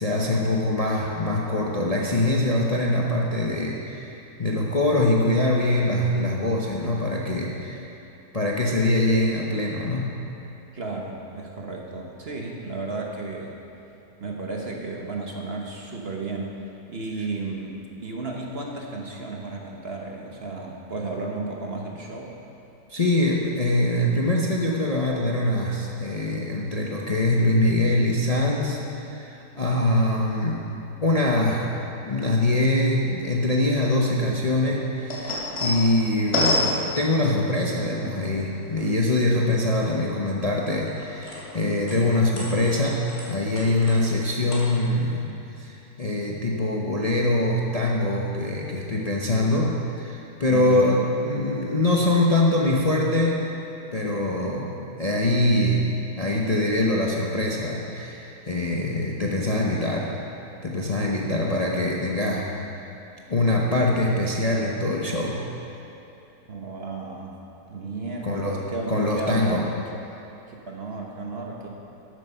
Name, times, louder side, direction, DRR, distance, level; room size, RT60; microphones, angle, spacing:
voice 1, 0.0-4.1 4.4-7.8 8.3-10.2 22.9-30.7 31.0-31.7 32.1-45.2 45.6-53.4 53.9-55.9 56.2-60.1 60.6-62.5 63.3-65.4 68.2-68.6 68.9-69.6, left 1 dB, 30° left, -3 dB, 0.8 m, -23 dB
voice 2, 10.7-13.5 14.2-16.6 16.9-22.3 50.5-50.9 66.5-67.3 67.7-69.7 70.5-71.7, right 3 dB, 45° right, 0 dB, 1.2 m, -33 dB
sound 1, 35.0-37.5 38.2-39.2 39.6-41.6 41.9-44.2 44.5-44.6, left 1 dB, 45° left, 3.0 m, -29 dB
13.0 x 9.0 x 5.6 m, 2.9 s
omnidirectional pair, 1.7 m